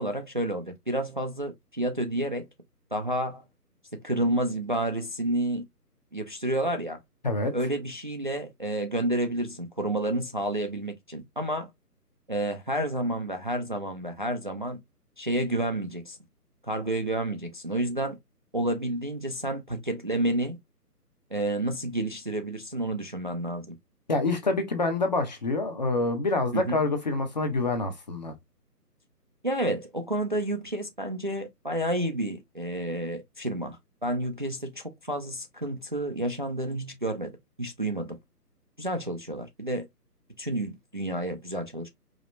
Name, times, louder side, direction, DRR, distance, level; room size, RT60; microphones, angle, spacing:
voice 1, 0.0-2.5 2.9-3.4 3.9-5.6 6.1-7.0 7.5-11.7 12.3-14.8 15.2-16.2 16.6-18.2 18.5-20.6 21.3-23.8 26.5-26.8 29.4-37.3 37.6-38.2 38.8-39.9 40.4-41.9, right 1 dB, 35° right, 0.5 m, -30 dB
voice 2, 24.1-28.3, left 3 dB, 25° left, 0.8 m, -26 dB
5.0 x 2.9 x 3.1 m
figure-of-eight pair, 150°, 48 cm